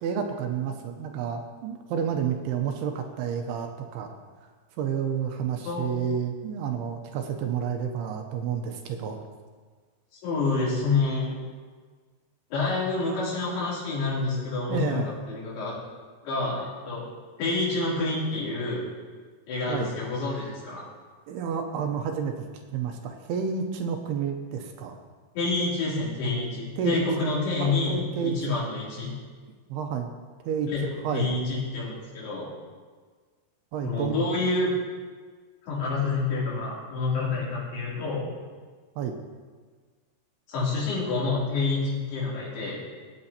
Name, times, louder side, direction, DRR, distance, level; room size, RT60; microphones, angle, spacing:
voice 1, 0.0-4.1 4.8-9.2 14.7-15.1 19.7-19.9 21.3-22.5 22.7-25.0 26.8-27.0 27.6-28.5 29.7-30.1 30.4-30.7 31.0-31.3 33.7-34.2 39.0-39.2, right 7 dB, 85° right, 4 dB, 2.6 m, -30 dB
voice 2, 5.6-6.0 10.2-11.4 12.5-15.7 16.2-17.0 17.4-18.8 19.5-20.8 25.3-28.0 28.2-29.1 30.7-30.8 31.1-32.5 33.8-34.7 35.6-38.3 40.5-42.8, left 3 dB, 70° left, -7 dB, 5.1 m, -28 dB
18.5 x 8.6 x 2.9 m, 1.5 s
omnidirectional pair, 4.8 m